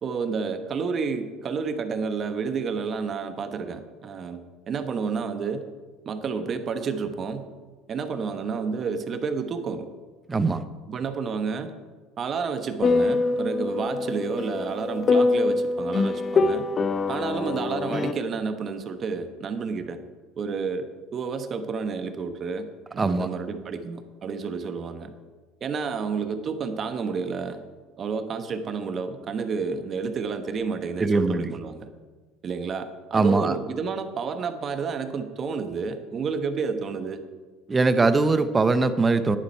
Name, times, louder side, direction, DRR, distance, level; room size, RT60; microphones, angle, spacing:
voice 1, 0.0-4.4 4.7-5.6 6.0-7.4 7.9-9.9 10.9-11.7 12.2-16.6 17.1-20.0 20.4-20.9 21.1-25.1 25.6-27.6 28.0-31.9 32.4-37.2, right 5 dB, 40° right, 8 dB, 1.2 m, -30 dB
voice 2, 10.3-10.6 23.0-23.3 31.0-31.6 33.1-33.5 37.7-39.4, right 3 dB, 20° right, 12 dB, 0.8 m, -21 dB
sound 1, 12.8-18.1, left 3 dB, 35° left, 0.6 m, -24 dB
10.5 x 9.8 x 4.6 m, 1.4 s
supercardioid pair, 95°, 0 cm